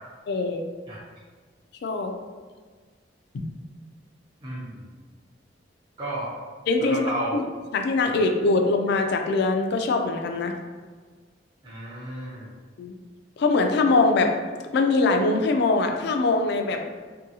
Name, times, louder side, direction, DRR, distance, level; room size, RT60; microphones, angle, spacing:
voice 1, 0.3-0.6 1.8-2.1 3.3-3.4 6.7-7.0 7.3-7.4 7.7-10.5 12.8-12.9 13.4-14.3 14.7-16.8, left 3 dB, 65° left, 5 dB, 0.3 m, -22 dB
voice 2, 4.4-5.0 6.0-6.3 6.8-7.3 11.6-12.5, right 1 dB, 25° right, -9 dB, 0.5 m, -32 dB
2.7 x 2.6 x 2.7 m, 1.5 s
head